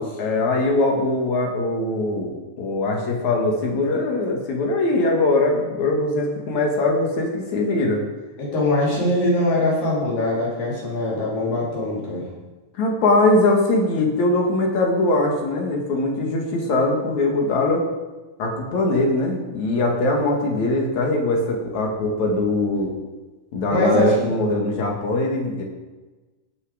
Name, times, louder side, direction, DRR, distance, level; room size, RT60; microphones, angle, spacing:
voice 1, 0.2-8.0 12.7-17.9 18.4-22.9 23.5-25.6, left 2 dB, 60° left, 1 dB, 3.0 m, -21 dB
voice 2, 8.4-12.3 23.7-24.1, left 1 dB, 80° left, -5 dB, 5.4 m, -22 dB
18.5 x 7.1 x 5.0 m, 1.2 s
omnidirectional pair, 3.9 m